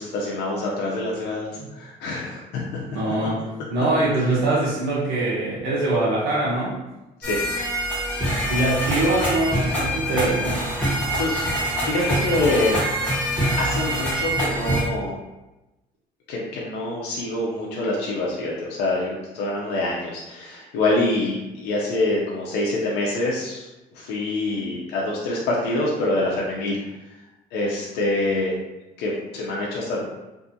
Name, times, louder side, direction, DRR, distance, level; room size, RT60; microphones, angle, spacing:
voice 1, 0.0-3.3 3.7-3.8 7.2-7.4 11.2-13.0 13.6-15.2 16.3-23.7 23.9-26.8 27.5-28.6 29.0-30.0, left 2 dB, 85° left, -4 dB, 0.6 m, -26 dB
voice 2, 2.9-3.4 3.7-6.8 8.5-10.6, right 2 dB, 85° right, -7 dB, 0.7 m, -23 dB
sound 1, 7.2-14.8, equal, 10° left, 1.1 m, -24 dB
2.6 x 2.4 x 2.6 m, 1.0 s
cardioid pair, 110°, 17 cm